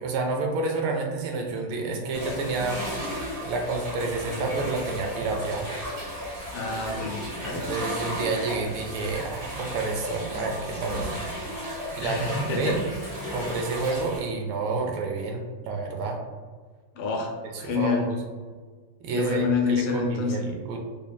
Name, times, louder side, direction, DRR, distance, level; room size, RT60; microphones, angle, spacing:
voice 1, 0.0-2.8 3.4-5.7 7.5-11.1 11.9-12.8 13.3-16.2 17.6-18.0 19.0-20.8, right 3 dB, 80° right, 2 dB, 1.4 m, -29 dB
sound 1, 2.1-14.2, equal, 50° right, 2.1 m, -34 dB
voice 2, 6.5-7.7 12.0-12.8 13.2-13.5 16.9-18.1 19.1-20.5, left 4 dB, 80° left, 1 dB, 1.5 m, -28 dB
5.0 x 2.8 x 2.2 m, 1.5 s
omnidirectional pair, 2.4 m